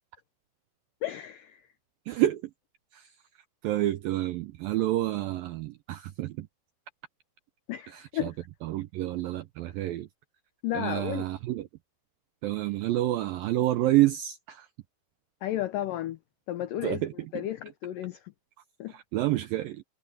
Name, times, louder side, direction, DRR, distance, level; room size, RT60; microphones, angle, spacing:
voice 1, 1.0-1.6 7.7-8.3 10.6-11.2 15.4-16.2 16.5-17.0 17.3-18.2 18.8-18.9, left 13 dB, 85° left, 1.9 m, -33 dB
voice 2, 2.1-2.5 2.9-6.5 7.9-8.3 8.6-10.1 10.7-11.7 12.4-14.7 16.8-17.5 18.9-19.8, right 15 dB, 80° right, 2.0 m, -29 dB
omnidirectional pair, 5.0 m